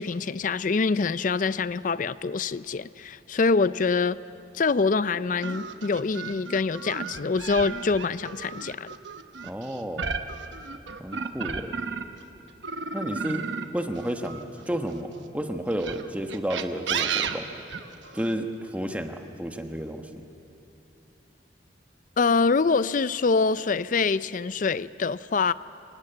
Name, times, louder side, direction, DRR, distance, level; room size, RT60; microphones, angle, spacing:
voice 1, 0.0-4.2 4.5-8.9 22.2-25.5, left 4 dB, 45° left, 17 dB, 0.4 m, -25 dB
sound 1, 5.4-12.2 12.6-15.0 15.7-18.3, right 5 dB, 80° right, 1.0 m, -33 dB
voice 2, 9.4-10.1 11.0-11.7 12.9-17.4 18.1-20.2, equal, 10° right, 5 dB, 1.1 m, -32 dB
26.0 x 19.0 x 7.9 m, 2.8 s
head